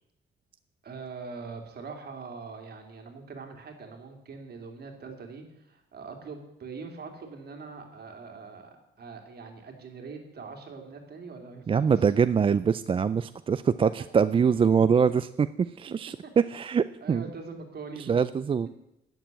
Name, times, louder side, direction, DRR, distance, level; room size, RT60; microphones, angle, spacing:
voice 1, 0.8-11.9 14.0-14.1 16.2-16.3 17.0-18.1, right 4 dB, 55° right, 3 dB, 2.6 m, -42 dB
voice 2, 11.7-17.2 18.1-18.7, right 6 dB, 25° right, 13 dB, 0.3 m, -24 dB
9.7 x 7.0 x 8.9 m, 0.86 s
cardioid pair, 90°, 20 cm